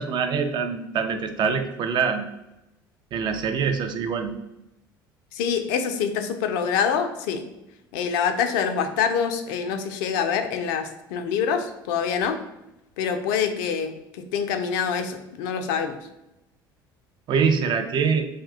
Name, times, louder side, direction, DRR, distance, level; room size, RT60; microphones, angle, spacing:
voice 1, 0.0-2.3 3.1-4.3 17.3-18.3, right 6 dB, 40° right, 7 dB, 0.4 m, -24 dB
voice 2, 5.3-7.4 7.9-12.4 13.0-16.0, left 7 dB, 65° left, 7 dB, 0.4 m, -25 dB
2.6 x 2.2 x 3.5 m, 0.89 s
figure-of-eight pair, 65°, 12 cm